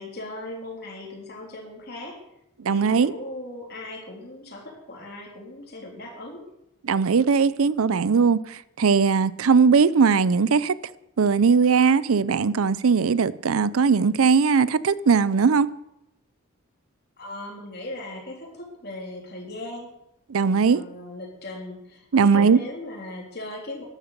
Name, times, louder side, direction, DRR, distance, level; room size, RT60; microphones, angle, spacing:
voice 1, 0.0-2.3 2.7-6.5 7.8-8.2 17.2-19.9 20.7-23.8, left 2 dB, 45° left, 3.5 m, -38 dB
voice 2, 2.6-3.1 6.8-10.7 11.2-15.7 20.3-20.8 22.1-22.6, right 5 dB, 80° right, 0.5 m, -19 dB
12.0 x 10.5 x 6.6 m
head